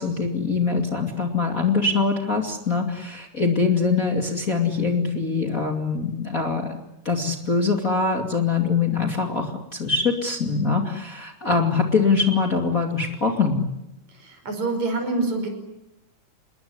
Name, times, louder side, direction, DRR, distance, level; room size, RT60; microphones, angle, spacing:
voice 1, 0.0-6.7 7.0-13.6, left 4 dB, 25° left, 3 dB, 2.6 m, -23 dB
voice 2, 14.2-15.5, right 3 dB, 60° right, 6 dB, 6.6 m, -26 dB
28.0 x 21.0 x 9.6 m, 0.90 s
omnidirectional pair, 3.7 m